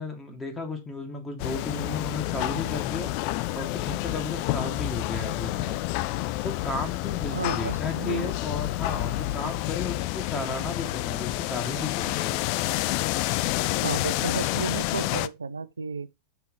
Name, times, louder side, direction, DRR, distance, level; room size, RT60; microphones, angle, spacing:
voice 1, 0.0-3.1 3.5-5.8 6.4-12.5, left 3 dB, 15° left, 2.1 m, -34 dB
sound 1, 1.4-15.3, left 17 dB, 45° left, 0.4 m, -29 dB
voice 2, 7.3-8.3 13.8-16.1, right 4 dB, 75° right, 0.6 m, -32 dB
6.0 x 5.9 x 5.3 m
figure-of-eight pair, 90°, 0 cm